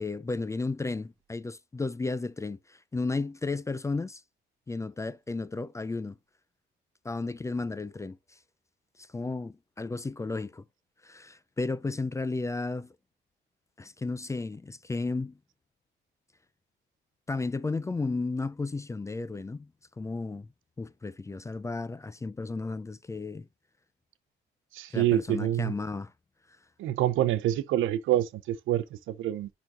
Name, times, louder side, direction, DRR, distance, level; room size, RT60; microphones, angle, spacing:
voice 1, 0.0-4.2 4.7-6.2 7.0-8.4 9.0-10.6 11.0-13.0 13.8-15.4 17.3-19.7 20.0-20.5 20.8-23.5 24.9-26.1, left 3 dB, 15° left, 0.3 m, -33 dB
voice 2, 24.7-25.7 26.8-29.5, right 13 dB, 85° right, 0.6 m, -27 dB
10.5 x 3.9 x 2.4 m
cardioid pair, 90°, 20 cm